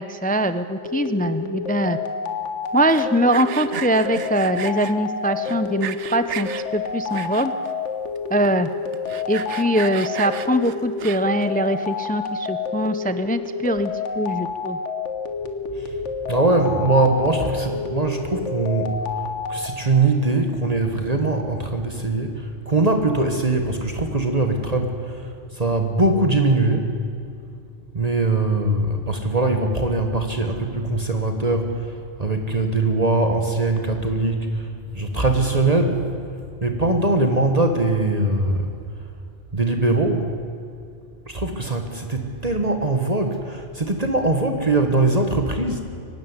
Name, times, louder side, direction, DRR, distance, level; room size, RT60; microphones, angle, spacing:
voice 1, 0.0-2.0 2.7-7.5 8.3-8.7 9.3-14.8, right 1 dB, 10° left, 11 dB, 0.4 m, -22 dB
sound 1, 0.8-19.7, left 5 dB, 75° left, 1.7 m, -29 dB
Sawing, 2.8-4.9 5.5-6.6 7.1-7.7 8.2-8.3 8.4-8.5 8.9-11.4, right 8 dB, 70° right, 1.1 m, -33 dB
voice 2, 16.3-19.0 19.5-26.9 27.9-31.9 32.2-34.7 34.9-36.1 36.6-38.7 39.5-40.2 41.3-45.8, right 2 dB, 35° right, 4 dB, 1.5 m, -21 dB
23.5 x 12.0 x 9.6 m, 2.4 s
omnidirectional pair, 1.2 m